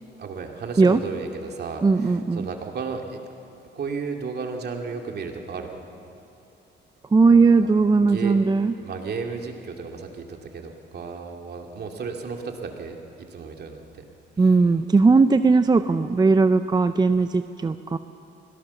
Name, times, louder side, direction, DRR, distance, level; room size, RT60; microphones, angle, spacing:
voice 1, 0.2-3.2 3.8-5.8 7.3-7.5 8.1-8.4 8.7-13.0 13.3-14.0 14.4-14.5, right 5 dB, 55° right, 3 dB, 2.5 m, -34 dB
voice 2, 1.8-2.5 7.1-8.7 14.4-18.0, right 4 dB, 20° right, 10 dB, 0.6 m, -18 dB
24.0 x 17.0 x 7.0 m, 2.8 s
cardioid pair, 90°, 20 cm